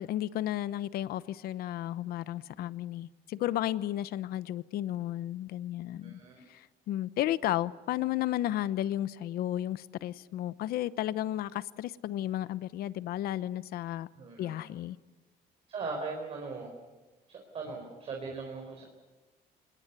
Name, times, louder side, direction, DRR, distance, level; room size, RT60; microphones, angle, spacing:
voice 1, 0.0-6.2 6.5-14.1 14.4-15.0, left 13 dB, 70° left, 0.9 m, -33 dB
voice 2, 6.0-6.5 14.2-14.6 15.7-16.7 17.3-18.8, right 4 dB, 35° right, 4.3 m, -39 dB
26.5 x 21.0 x 8.2 m
cardioid pair, 175°, 16 cm